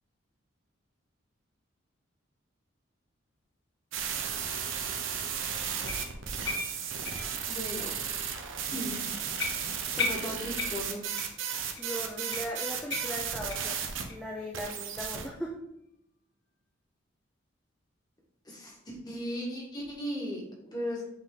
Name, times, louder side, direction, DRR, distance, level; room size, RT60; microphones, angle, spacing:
sound 1, 3.9-14.0 14.5-15.3, right 7 dB, 75° right, 0.9 m, -34 dB
sound 2, 5.9-7.8 8.2-8.4 8.8-8.9 9.4-11.4 11.8-11.9 12.3-13.8 14.1-14.2 14.7-14.8 15.3-15.4, left 4 dB, 60° left, 1.1 m, -37 dB
voice 1, 7.5-8.1 8.7-9.0 9.9-11.0 18.4-21.1, equal, 20° left, -3 dB, 1.7 m, -37 dB
voice 2, 11.8-15.5, equal, 5° left, -3 dB, 0.6 m, -38 dB
8.0 x 3.8 x 3.8 m, 0.79 s
head